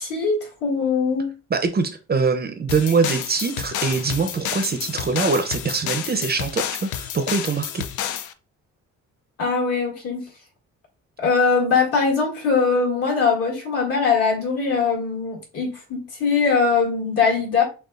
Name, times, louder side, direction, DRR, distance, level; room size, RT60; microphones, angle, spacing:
voice 1, 0.0-1.3 9.4-10.2 11.2-17.6, left 5 dB, 50° left, 2.2 m, -21 dB
voice 2, 1.5-7.8, right 4 dB, 30° right, 0.6 m, -23 dB
sound 1, 2.7-8.3, left 10 dB, 75° left, 0.5 m, -30 dB
6.4 x 2.4 x 2.4 m
cardioid pair, 90°, 30 cm